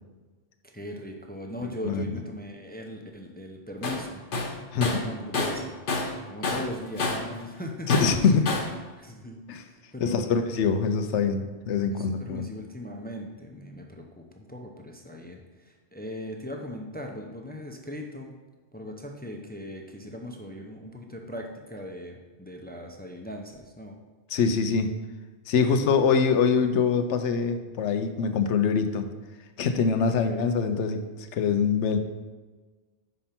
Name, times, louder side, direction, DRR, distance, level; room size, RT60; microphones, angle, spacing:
voice 1, 0.6-5.7 6.3-7.9 8.4-8.5 9.0-10.2 11.9-18.3 18.7-23.9 25.5-25.9 30.3-30.4, left 1 dB, 10° left, 2 dB, 0.5 m, -39 dB
Tools, 3.8-4.0 4.3-6.2 6.4-7.3 7.9-8.8, left 3 dB, 50° left, 1.0 m, -29 dB
voice 2, 4.7-5.0 7.9-8.4 9.5-9.6 10.0-12.5 24.3-24.9 25.5-29.1 29.6-32.0, left 5 dB, 85° left, 8 dB, 1.0 m, -24 dB
5.5 x 5.2 x 5.8 m, 1.3 s
omnidirectional pair, 1.2 m